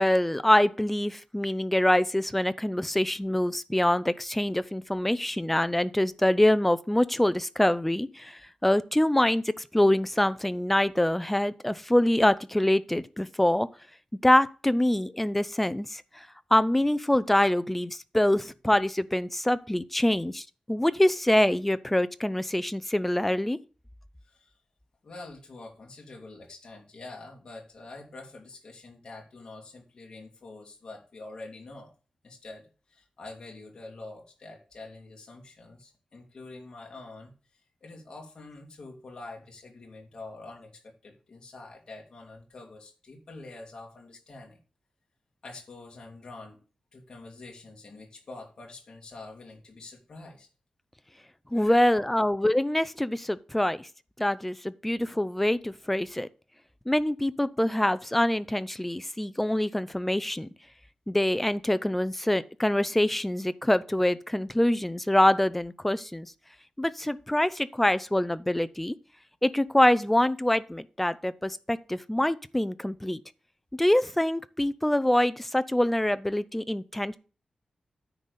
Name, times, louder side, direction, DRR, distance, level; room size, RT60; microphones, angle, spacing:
voice 1, 0.0-13.7 14.2-23.6 51.5-53.9 54.2-56.3 56.9-60.5 61.1-66.3 66.8-68.9 69.4-73.2 73.8-77.2, left 1 dB, 5° left, 0.4 m, -25 dB
voice 2, 25.0-31.9 32.2-37.3 37.8-44.6 45.4-46.6 46.9-50.5 51.5-52.1, left 2 dB, 45° left, 2.5 m, -46 dB
9.9 x 4.0 x 6.8 m
wide cardioid pair, 170°, 2 cm